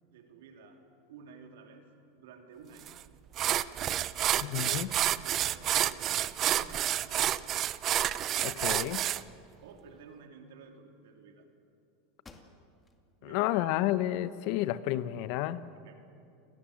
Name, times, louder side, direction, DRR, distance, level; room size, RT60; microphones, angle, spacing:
voice 1, 0.1-0.8 1.1-3.0 3.4-7.6 8.8-9.0 9.6-11.5 13.2-13.7 15.8-15.9, right 5 dB, 75° right, 4 dB, 3.3 m, -53 dB
sound 1, 2.9-3.0 3.4-9.2, right 12 dB, 40° right, 0.7 m, -29 dB
voice 2, 4.3-4.9 8.4-9.0 13.2-15.6, left 14 dB, 60° left, 15 dB, 0.9 m, -31 dB
sound 2, 11.6-11.7 12.2-13.0 13.5-13.6 14.1-15.0, left 3 dB, 20° left, 2.4 m, -57 dB
29.0 x 18.5 x 7.3 m, 2.6 s
hypercardioid pair, 105°, 0 cm